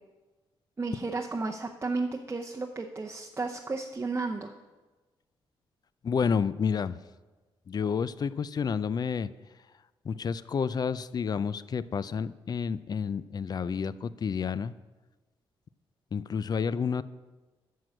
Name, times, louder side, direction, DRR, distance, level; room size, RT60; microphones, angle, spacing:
voice 1, 0.8-4.5, right 3 dB, 25° right, 1 dB, 0.7 m, -33 dB
voice 2, 6.0-7.0 7.7-9.3 10.0-14.7 16.1-17.0, left 6 dB, 45° left, 16 dB, 0.4 m, -30 dB
9.4 x 6.1 x 6.4 m, 1.2 s
cardioid pair, 75°, 10 cm